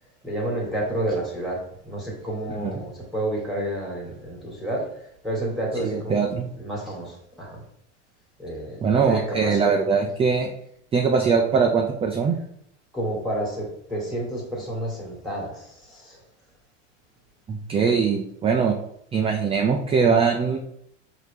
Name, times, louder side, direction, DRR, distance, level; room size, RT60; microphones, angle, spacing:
voice 1, 0.2-1.6 1.8-4.8 5.2-6.2 6.6-7.6 8.4-8.8 9.0-9.7 12.9-16.2, right 1 dB, ahead, -3 dB, 1.5 m, -30 dB
voice 2, 5.8-6.4 8.8-10.5 10.9-12.4 17.5-18.8 19.1-20.6, right 5 dB, 15° right, 2 dB, 0.4 m, -21 dB
4.0 x 3.1 x 3.3 m, 0.70 s
hypercardioid pair, 95°, 36 cm